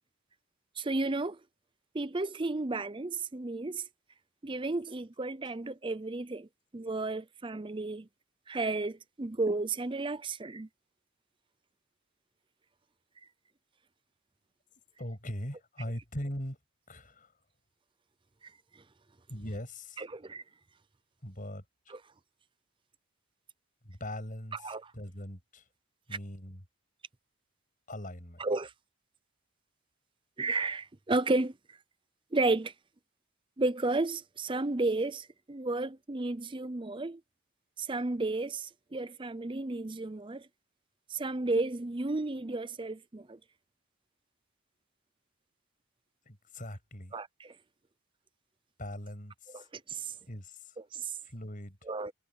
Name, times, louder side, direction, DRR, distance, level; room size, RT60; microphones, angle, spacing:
voice 1, 0.8-1.4 1.9-3.8 4.4-6.5 6.7-8.1 8.5-10.7 20.0-20.4 24.6-24.9 28.4-28.7 30.4-31.8 32.3-32.7 33.6-37.2 37.8-40.5 41.1-43.4 47.1-47.5 49.5-50.1 50.9-51.2 51.9-52.1, right 2 dB, 20° right, 0.5 m, -33 dB
voice 2, 15.0-16.6 16.9-17.3 19.3-20.0 21.2-22.0 23.8-25.7 26.1-26.6 27.9-28.4 46.3-47.1 48.8-49.7 50.3-50.8 51.2-51.8, left 1 dB, 35° left, 7.3 m, -41 dB
head